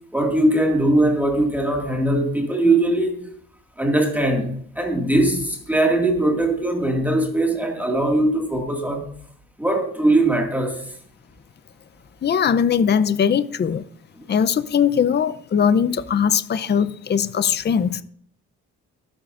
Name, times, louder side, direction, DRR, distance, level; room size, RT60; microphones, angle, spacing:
voice 1, 0.1-3.3 3.8-9.1 9.6-11.0 14.2-14.3, right 1 dB, 5° right, 2.0 m, -20 dB
voice 2, 12.2-13.8 14.3-18.0, left 7 dB, 35° left, 0.6 m, -20 dB
24.5 x 8.9 x 2.5 m
cardioid pair, 90°, 30 cm